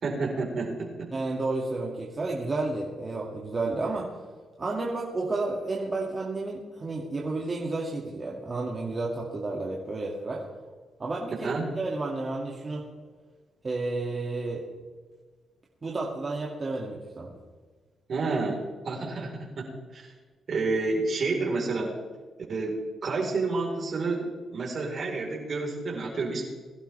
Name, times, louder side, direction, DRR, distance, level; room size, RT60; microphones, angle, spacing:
voice 1, 0.0-1.1 11.4-11.7 18.1-19.6 19.9-20.1 20.5-21.9 22.5-26.4, right 3 dB, 55° right, 0 dB, 4.4 m, -29 dB
voice 2, 1.1-4.1 4.6-10.4 11.0-11.5 11.8-12.9 13.6-14.6 15.8-17.3, right 2 dB, 35° right, -3 dB, 2.4 m, -31 dB
22.0 x 11.5 x 3.5 m, 1.4 s
cardioid pair, 75°, 0 cm